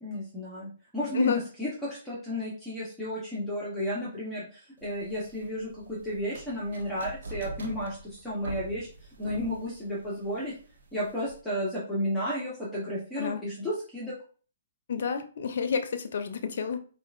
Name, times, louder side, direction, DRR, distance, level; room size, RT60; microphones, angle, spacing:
voice 1, 0.0-8.9 9.2-10.5 10.9-14.2, equal, 5° left, -8 dB, 1.1 m, -33 dB
voice 2, 1.1-1.5 13.2-13.4 14.9-16.8, left 6 dB, 60° left, 9 dB, 0.6 m, -29 dB
sound 1, 4.8-11.4, right 2 dB, 70° right, 0.7 m, -44 dB
4.5 x 2.5 x 2.4 m, 0.41 s
figure-of-eight pair, 130°, 0 cm